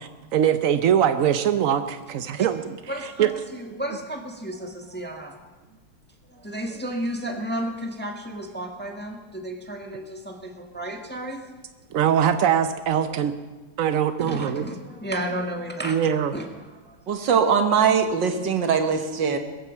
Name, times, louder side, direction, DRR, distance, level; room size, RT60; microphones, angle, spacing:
voice 1, 0.0-2.8 3.2-3.3 11.9-13.3 13.8-14.6 15.8-16.3, right 9 dB, 85° right, 10 dB, 0.7 m, -22 dB
voice 2, 2.9-5.5 6.3-11.4 13.1-13.2 14.2-16.0 16.3-17.0, right 1 dB, 5° left, 2 dB, 1.2 m, -33 dB
voice 3, 17.1-19.4, right 6 dB, 60° right, 6 dB, 1.8 m, -21 dB
21.5 x 9.0 x 7.4 m, 1.3 s
omnidirectional pair, 2.4 m